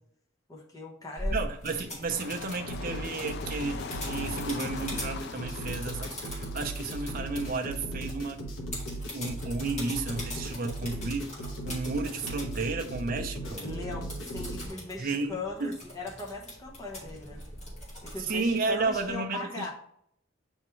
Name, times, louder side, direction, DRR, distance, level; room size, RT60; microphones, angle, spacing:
voice 1, 0.5-1.4 13.6-17.4 18.0-19.7, left 3 dB, 15° left, -2 dB, 1.1 m, -39 dB
sound 1, 1.2-19.1, equal, 35° left, 2.1 m, -42 dB
voice 2, 1.3-8.4 9.1-11.3 11.6-13.7 15.0-15.8 18.2-19.7, right 3 dB, 45° right, 4 dB, 0.6 m, -32 dB
sound 2, 2.1-7.8, left 5 dB, 50° left, 0.4 m, -42 dB
sound 3, 2.7-14.7, right 1 dB, 80° left, 1.2 m, -38 dB
8.5 x 3.6 x 3.1 m, 0.69 s
head